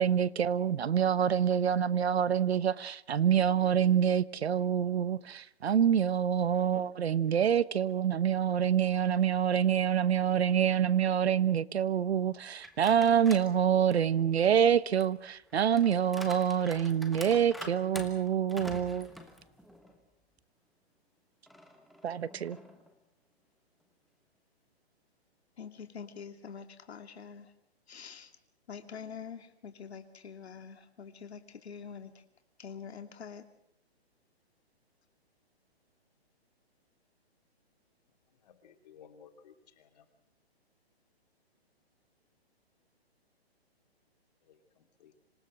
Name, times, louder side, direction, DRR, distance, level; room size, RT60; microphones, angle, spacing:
voice 1, 0.0-19.1 22.0-22.6, right 8 dB, 75° right, 1.1 m, -26 dB
sound 1, 12.6-13.5 13.9-20.0 20.4-20.5 21.5-22.9, left 1 dB, ahead, 1.2 m, -47 dB
voice 2, 25.6-27.5 27.9-28.3 28.7-32.2 32.6-33.4, left 6 dB, 75° left, 2.6 m, -45 dB
voice 3, 38.4-40.1 44.4-45.1, left 7 dB, 40° left, 3.2 m, -58 dB
26.5 x 17.5 x 7.7 m
hypercardioid pair, 160°, 32 cm